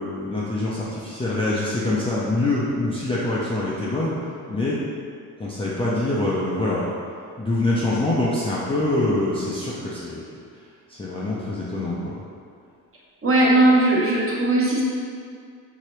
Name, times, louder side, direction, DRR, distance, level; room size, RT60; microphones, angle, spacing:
voice 1, 0.0-4.1 4.5-4.8 5.4-6.9 7.4-10.2 10.9-12.1, left 2 dB, 15° left, -8 dB, 0.5 m, -24 dB
voice 2, 13.2-14.8, right 2 dB, 30° right, -5 dB, 0.9 m, -18 dB
2.9 x 2.8 x 3.1 m, 2.2 s
supercardioid pair, 65°, 45 cm